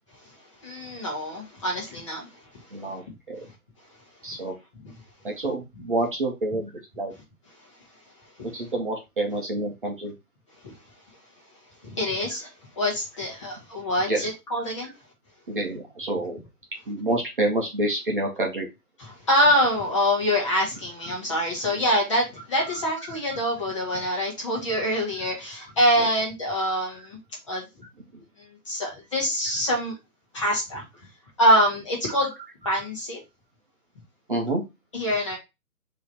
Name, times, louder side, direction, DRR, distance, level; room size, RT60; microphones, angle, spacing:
voice 1, 0.6-2.4 3.4-3.5 8.4-8.5 10.6-10.7 11.8-12.5 12.7-14.9 19.0-27.2 27.5-27.6 28.4-29.9 30.3-30.8 31.4-32.3 32.6-33.2 34.9-35.4, equal, 20° left, -3 dB, 1.3 m, -25 dB
voice 2, 2.7-3.4 4.2-4.5 5.2-7.1 8.5-10.1 14.1-14.3 15.5-16.4 16.9-18.7 22.6-22.8 23.3-23.4 26.6-26.7 32.1-32.2 32.7-32.8 34.3-34.6, right 2 dB, 35° right, 0 dB, 1.0 m, -28 dB
3.8 x 3.2 x 4.1 m, 0.23 s
hypercardioid pair, 165°, 46 cm